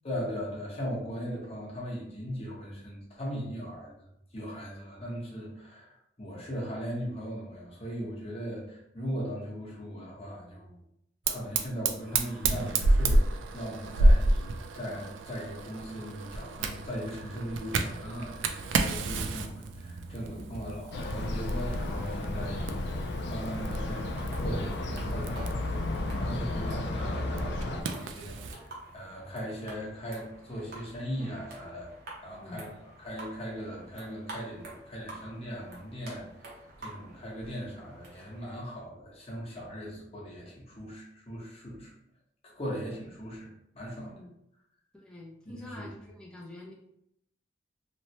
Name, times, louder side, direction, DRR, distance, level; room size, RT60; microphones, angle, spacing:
voice 1, 0.0-4.1 4.3-10.8 11.3-31.9 32.2-32.7 33.0-41.9 42.4-43.5 43.7-44.1 45.6-45.9, equal, 35° left, -4 dB, 0.9 m, -39 dB
Fire, 11.3-28.6, right 2 dB, 85° right, 0.3 m, -30 dB
voice 2, 18.7-19.0 20.4-20.6 32.3-32.7 43.9-44.3 44.9-46.7, left 1 dB, 5° left, -4 dB, 0.6 m, -47 dB
sound 1, 20.9-27.8, left 1 dB, 60° left, 0.4 m, -33 dB
sound 2, 22.0-38.7, right 2 dB, 55° right, 0.8 m, -49 dB
3.0 x 2.1 x 2.8 m, 0.77 s
head